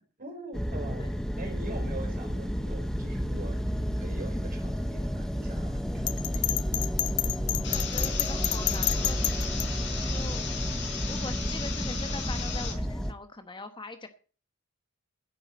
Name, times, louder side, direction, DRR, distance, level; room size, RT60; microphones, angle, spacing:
voice 1, 0.2-6.4, right 1 dB, 40° right, 3 dB, 4.8 m, -43 dB
sound 1, 0.5-13.1, equal, ahead, 0.8 m, -31 dB
Bell, 6.1-9.7, left 18 dB, 80° left, 0.5 m, -29 dB
voice 2, 7.5-9.5 10.1-10.4 11.1-14.1, left 2 dB, 20° left, 8 dB, 1.1 m, -42 dB
sound 2, 7.6-12.7, left 6 dB, 55° left, 4.2 m, -37 dB
10.5 x 8.7 x 7.5 m, 0.38 s
head